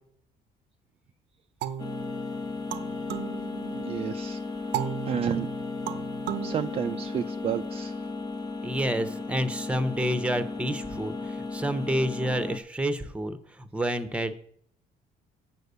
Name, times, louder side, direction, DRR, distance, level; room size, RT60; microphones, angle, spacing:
sound 1, 1.6-4.1 4.7-7.5, right 11 dB, 80° right, 0.7 m, -36 dB
sound 2, 1.8-12.6, left 3 dB, 25° left, 1.0 m, -35 dB
voice 1, 3.7-5.5 6.4-8.0, right 8 dB, 35° right, 7 dB, 0.4 m, -32 dB
voice 2, 8.6-14.3, equal, 5° right, 11 dB, 0.9 m, -29 dB
7.5 x 6.6 x 6.8 m, 0.64 s
cardioid pair, 110°, 17 cm